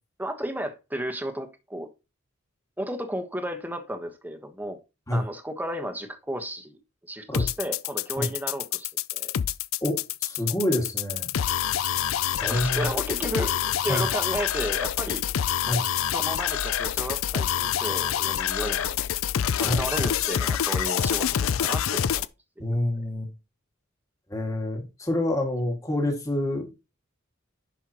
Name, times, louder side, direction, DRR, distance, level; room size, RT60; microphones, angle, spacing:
voice 1, 0.2-1.9 2.8-4.8 5.1-6.8 7.1-9.3 12.4-15.2 16.1-19.0 19.6-22.3 22.6-22.7, right 1 dB, 10° right, 1.2 m, -33 dB
sound 1, 7.3-22.3, left 9 dB, 80° left, 0.4 m, -27 dB
voice 2, 9.8-11.3 12.4-12.9 13.9-14.0 15.7-15.9 19.6-19.8 22.6-23.3 24.3-26.8, left 1 dB, 15° left, 2.1 m, -27 dB
11.0 x 5.5 x 3.0 m
head